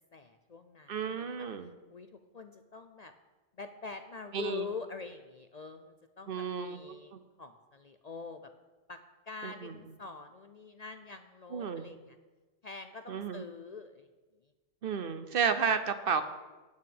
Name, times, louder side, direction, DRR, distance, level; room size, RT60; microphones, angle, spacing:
voice 1, 0.1-3.1 3.6-8.5 8.9-9.0 9.3-12.2 12.6-14.1, left 4 dB, 45° left, 8 dB, 0.5 m, -45 dB
voice 2, 0.9-1.7 4.3-4.7 6.3-6.8 7.1-7.2 9.4-9.7 11.5-11.9 13.1-13.4 14.8-16.2, right 6 dB, 55° right, 10 dB, 0.8 m, -32 dB
8.8 x 6.4 x 8.5 m, 1.2 s
omnidirectional pair, 1.2 m